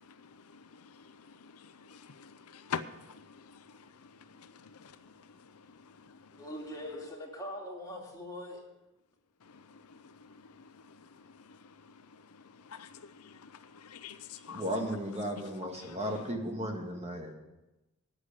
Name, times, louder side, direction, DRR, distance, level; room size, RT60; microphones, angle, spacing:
voice 1, 0.2-3.5 3.8-4.1 4.4-5.1 9.7-10.1 10.4-10.7 12.7-14.6 15.8-16.0, left 6 dB, 85° left, 0.6 m, -45 dB
voice 2, 6.3-8.6, left 1 dB, 15° left, 2.7 m, -42 dB
voice 3, 14.5-17.3, equal, 30° right, 1.8 m, -35 dB
9.9 x 8.1 x 8.3 m
head